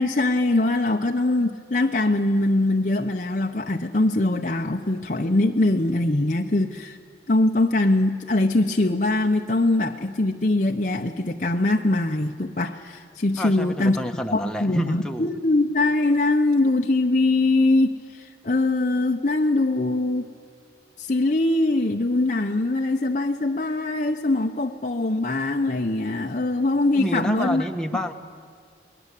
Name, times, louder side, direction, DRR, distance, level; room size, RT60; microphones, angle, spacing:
voice 1, 0.0-7.0 7.3-14.0 14.3-20.3 21.0-27.7, left 2 dB, 45° left, 3 dB, 0.8 m, -22 dB
voice 2, 13.4-15.3 26.9-28.1, equal, 5° left, 3 dB, 1.3 m, -28 dB
29.5 x 21.0 x 8.3 m, 2.2 s
head